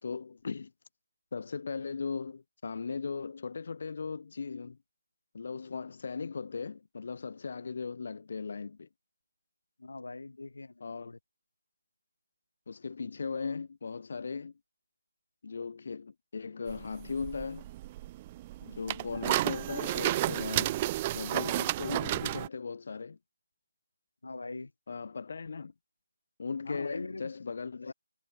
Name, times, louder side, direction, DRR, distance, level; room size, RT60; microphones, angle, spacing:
voice 1, 0.0-0.7 1.3-4.8 5.3-8.9 10.8-11.1 12.7-14.5 15.4-17.7 18.6-20.8 21.1-23.2 24.9-25.7 26.4-27.9, left 5 dB, 55° left, 4.2 m, -38 dB
voice 2, 9.8-11.2 24.2-24.7 26.7-27.3 27.8-27.9, left 3 dB, 80° left, 7.4 m, -42 dB
sound 1, 16.7-22.5, right 16 dB, 20° right, 0.3 m, -32 dB
figure-of-eight pair, 165°, 0 cm